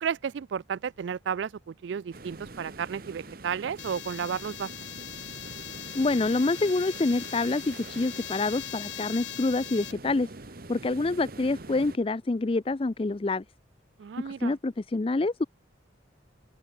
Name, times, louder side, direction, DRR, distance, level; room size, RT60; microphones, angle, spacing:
voice 1, 0.0-4.7 14.0-14.6, right 7 dB, 70° right, 0.3 m, -33 dB
sound 1, 2.1-12.0, right 2 dB, 50° right, 1.2 m, -44 dB
sound 2, 3.8-9.9, left 13 dB, 70° left, 0.8 m, -41 dB
voice 2, 5.9-10.3 10.7-13.4 14.2-15.4, left 2 dB, 30° left, 0.4 m, -27 dB
open air
head